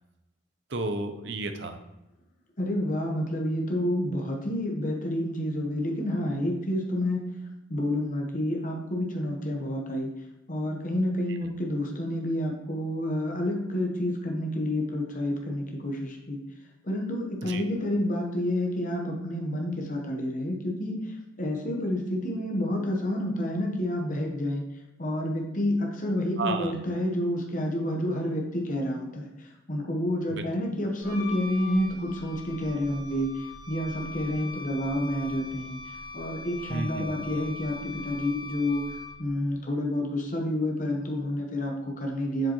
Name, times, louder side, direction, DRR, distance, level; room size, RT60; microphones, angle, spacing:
voice 1, 0.7-1.8 17.4-17.6 26.4-26.7 30.3-30.4 36.7-37.1, right 3 dB, 60° right, 7 dB, 0.7 m, -32 dB
voice 2, 2.6-7.2 7.7-10.1 10.5-16.4 16.8-24.6 25.0-38.8 39.2-42.5, left 1 dB, 40° left, 1 dB, 1.1 m, -29 dB
Wind instrument woodwind instrument, 31.0-39.3, left 3 dB, 85° left, 2.2 m, -41 dB
7.4 x 5.1 x 3.0 m, 0.96 s
head